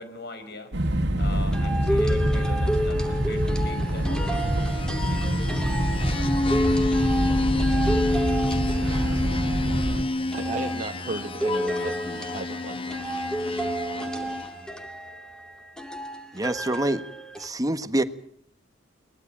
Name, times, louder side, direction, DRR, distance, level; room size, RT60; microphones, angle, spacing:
voice 1, 0.0-6.9, left 3 dB, 55° left, 9 dB, 5.0 m, -42 dB
sound 1, 0.7-10.0, equal, 60° right, 2.2 m, -25 dB
sound 2, 1.5-9.7 10.3-17.5, equal, 5° left, 2.5 m, -32 dB
sound 3, 3.8-14.7, left 2 dB, 30° left, 1.1 m, -29 dB
voice 2, 10.3-13.4 13.9-14.4, right 2 dB, 40° right, 3 dB, 1.4 m, -36 dB
voice 3, 16.3-17.0 17.4-18.0, right 1 dB, 20° right, 11 dB, 1.4 m, -26 dB
22.5 x 20.5 x 8.7 m, 0.63 s
head